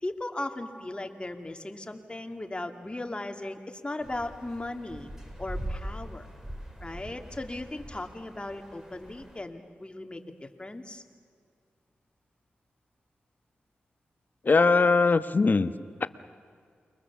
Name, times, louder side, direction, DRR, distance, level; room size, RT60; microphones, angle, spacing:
voice 1, 0.0-5.1 5.4-6.3 6.8-11.0, left 2 dB, 25° left, 5 dB, 2.5 m, -37 dB
sound 1, 4.0-9.4, right 1 dB, 10° right, 4.4 m, -41 dB
voice 2, 14.4-15.7, left 4 dB, 50° left, 12 dB, 1.1 m, -21 dB
29.5 x 23.0 x 7.2 m, 2.2 s
cardioid pair, 50°, 4 cm